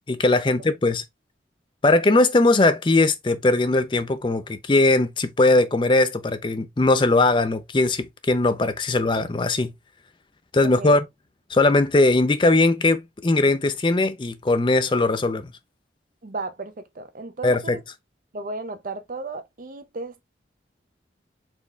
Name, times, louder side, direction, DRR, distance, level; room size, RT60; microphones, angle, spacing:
voice 1, 0.1-1.0 1.8-9.7 10.5-11.0 11.5-15.5 17.4-17.8, left 2 dB, 25° left, 0.5 m, -20 dB
voice 2, 16.2-17.8 18.3-20.2, right 3 dB, 45° right, 0.5 m, -34 dB
4.4 x 3.1 x 3.3 m
head